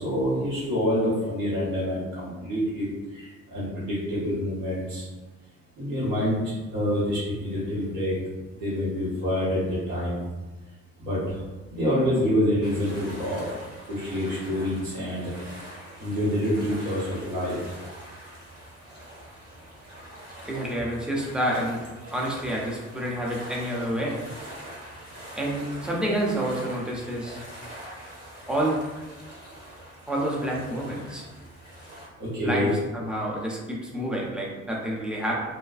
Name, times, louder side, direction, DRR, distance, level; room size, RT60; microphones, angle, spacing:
voice 1, 0.0-2.9 3.1-5.0 5.8-6.4 6.7-8.1 8.6-10.2 11.0-11.2 11.8-13.4 13.9-15.3 16.0-17.6 32.2-32.7, equal, 75° right, -9 dB, 1.2 m, -27 dB
sound 1, 12.6-32.1, right 1 dB, 35° right, 1.1 m, -44 dB
voice 2, 20.5-21.8 22.1-24.2 25.4-27.4 28.5-28.8 30.1-31.3 32.4-35.4, right 1 dB, ahead, -4 dB, 0.6 m, -28 dB
2.4 x 2.2 x 2.4 m, 1.2 s
figure-of-eight pair, 45°, 40 cm